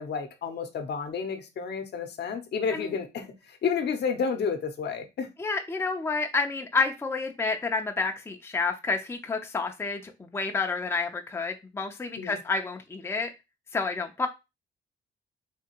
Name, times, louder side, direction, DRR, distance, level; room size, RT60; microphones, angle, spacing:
voice 1, 0.0-5.3 12.2-12.4, left 6 dB, 60° left, 0.7 m, -31 dB
voice 2, 5.4-13.3 13.7-14.3, left 4 dB, 15° left, 0.5 m, -29 dB
3.5 x 2.8 x 2.9 m
cardioid pair, 90°, 20 cm